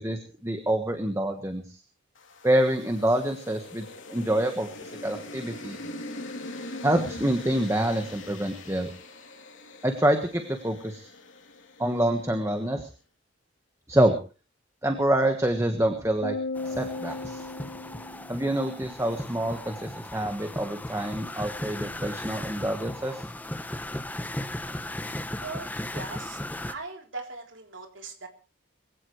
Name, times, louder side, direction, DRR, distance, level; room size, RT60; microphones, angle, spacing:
voice 1, 0.0-1.8 2.4-5.8 6.8-8.9 9.8-11.1 11.8-12.9 13.9-14.1 14.8-16.4 16.6-17.4 18.3-23.2, right 1 dB, 15° right, 5 dB, 1.4 m, -26 dB
sound 1, 2.2-12.5, left 2 dB, 70° left, 3.0 m, -42 dB
sound 2, 16.2-18.7, left 3 dB, 45° left, 0.8 m, -35 dB
sound 3, 16.6-26.7, left 1 dB, 10° left, 0.7 m, -36 dB
voice 2, 25.4-26.4 26.7-28.3, right 3 dB, 70° right, 2 dB, 3.6 m, -40 dB
22.0 x 16.5 x 3.2 m, 0.35 s
head